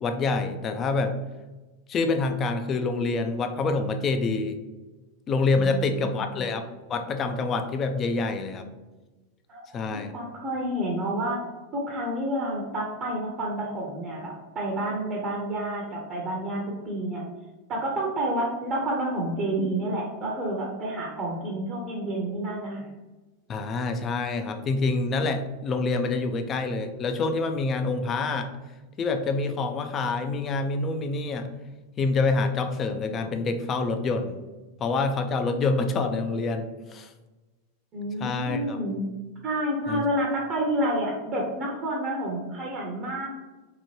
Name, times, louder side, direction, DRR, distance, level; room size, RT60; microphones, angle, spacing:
voice 1, 0.0-1.1 1.9-4.6 5.3-6.6 6.9-8.7 9.7-10.1 23.5-28.5 29.0-31.5 32.0-34.4 34.8-37.1 38.2-38.8 39.9-40.0, left 3 dB, 30° left, 7 dB, 0.3 m, -26 dB
voice 2, 5.5-6.4 9.5-9.7 10.1-11.4 11.7-17.2 17.7-22.9 37.9-39.0 39.4-43.3, right 1 dB, 35° right, -2 dB, 0.7 m, -29 dB
2.9 x 2.2 x 2.9 m, 1.2 s
hypercardioid pair, 100°, 0 cm